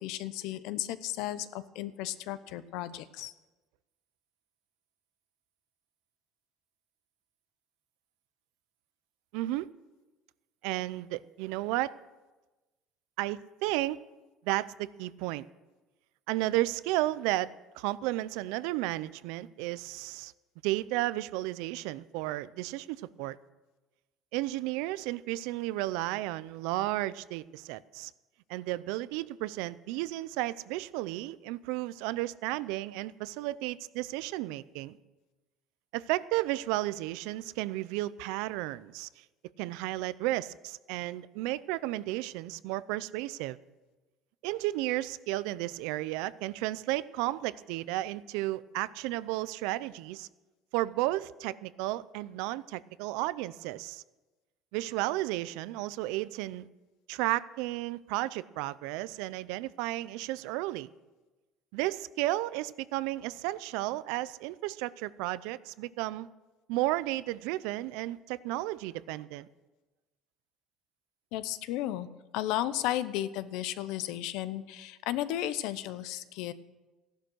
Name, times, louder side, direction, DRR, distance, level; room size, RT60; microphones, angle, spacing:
voice 1, 0.0-3.3 71.3-72.1 72.3-76.5, left 13 dB, 75° left, 14 dB, 0.8 m, -34 dB
voice 2, 9.3-9.7 10.6-11.9 13.2-14.0 14.4-15.4 16.3-20.3 20.6-23.4 24.3-28.1 28.5-35.0 35.9-39.1 39.6-43.6 44.4-50.3 50.7-54.0 54.7-56.7 57.1-60.9 61.7-66.3 66.7-69.5, right 17 dB, 85° right, 18 dB, 0.5 m, -33 dB
15.5 x 11.5 x 6.3 m, 1.2 s
cardioid pair, 155°, 0 cm